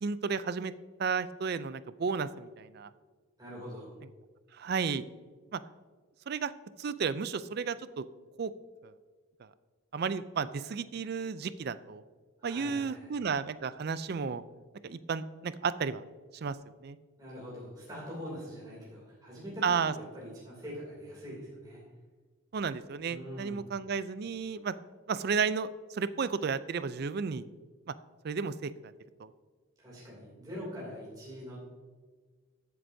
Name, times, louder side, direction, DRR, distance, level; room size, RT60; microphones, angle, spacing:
voice 1, 0.0-0.7 1.0-2.9 4.5-5.0 5.5-5.6 6.3-6.5 6.8-8.0 8.4-8.5 8.8-8.9 9.4-9.5 9.9-12.0 12.4-14.4 14.8-16.0 16.3-16.6 16.8-17.0 19.6-19.9 22.5-24.7 25.1-27.4 27.9-28.0 28.2-28.9 29.2-29.3, right 5 dB, 50° right, 15 dB, 0.4 m, -33 dB
voice 2, 3.4-3.9 12.4-13.2 17.2-21.8 23.0-23.7 29.8-31.6, equal, 20° right, -6 dB, 2.7 m, -43 dB
14.0 x 7.8 x 2.7 m, 1.5 s
head